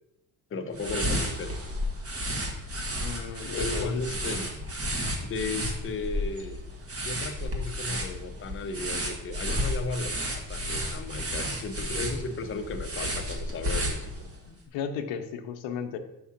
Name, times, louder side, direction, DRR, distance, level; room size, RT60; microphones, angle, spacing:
voice 1, 0.5-1.6 3.6-4.7 5.2-6.6 7.0-14.3, left 3 dB, 30° left, 6 dB, 0.7 m, -35 dB
sound 1, 0.7-14.4, equal, 30° right, 1.5 m, -32 dB
voice 2, 3.0-4.0 14.5-16.0, left 7 dB, 90° left, 7 dB, 0.8 m, -35 dB
5.8 x 4.8 x 5.8 m, 0.89 s
cardioid pair, 105°, 44 cm